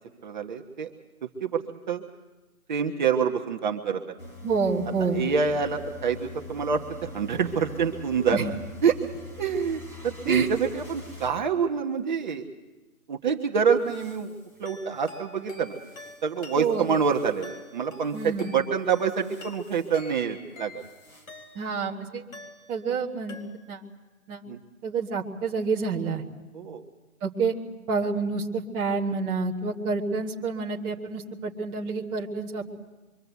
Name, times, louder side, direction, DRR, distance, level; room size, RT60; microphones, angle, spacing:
voice 1, 0.2-0.9 1.2-2.0 2.7-4.2 5.0-8.5 8.8-9.1 9.4-12.5 13.1-14.3 14.6-15.7 16.2-20.8 24.5-24.6 26.5-26.8, right 6 dB, 30° right, 3 dB, 1.1 m, -26 dB
sound 1, 4.2-11.4 13.8-15.1 15.7-17.6 18.0-18.4 19.0-20.1 20.5-21.5, left 2 dB, 15° left, 2.4 m, -45 dB
voice 2, 4.4-5.2 8.3-8.4 10.2-10.5 16.6-16.8 18.1-18.5 21.5-22.2 22.7-23.4 23.7-23.8 24.3-24.4 24.8-26.3 27.2-27.5 27.9-32.7, right 4 dB, 10° right, -3 dB, 1.4 m, -28 dB
sound 2, 14.6-21.9 22.3-23.0 23.3-23.9, left 3 dB, 60° left, 4.0 m, -48 dB
26.0 x 24.0 x 8.1 m, 1.1 s
hypercardioid pair, 165°, 43 cm